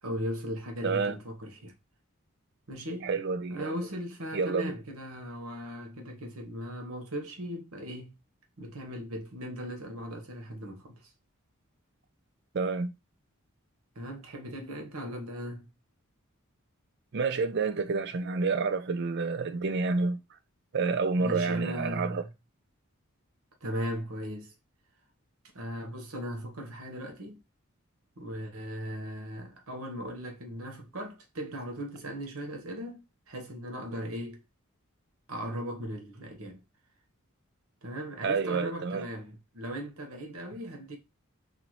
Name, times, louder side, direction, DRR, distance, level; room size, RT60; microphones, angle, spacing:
voice 1, 0.0-1.7 2.7-3.1 3.5-8.2 8.6-11.1 13.9-15.7 21.2-22.3 23.6-24.5 25.5-27.4 28.2-34.4 35.3-36.6 37.8-41.0, equal, 90° right, 1.1 m, -38 dB
voice 2, 0.8-1.2 3.0-3.8 4.3-4.7 12.5-12.9 17.1-20.2 20.7-22.2 38.2-39.0, right 4 dB, 55° right, 0.5 m, -29 dB
4.1 x 2.8 x 3.0 m
head